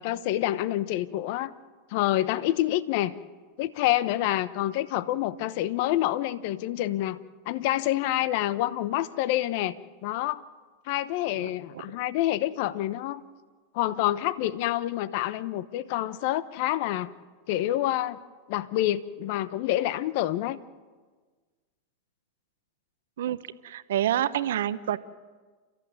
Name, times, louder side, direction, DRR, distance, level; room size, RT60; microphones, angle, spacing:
voice 1, 0.0-1.5 1.9-3.1 3.6-7.2 7.5-9.8 10.0-10.4 10.9-13.2 13.7-17.1 17.5-18.2 18.5-20.6, left 14 dB, 60° left, 16 dB, 0.9 m, -27 dB
voice 2, 23.6-25.0, right 11 dB, 80° right, 13 dB, 0.9 m, -27 dB
29.0 x 14.5 x 9.6 m, 1.4 s
hypercardioid pair, 105°, 0 cm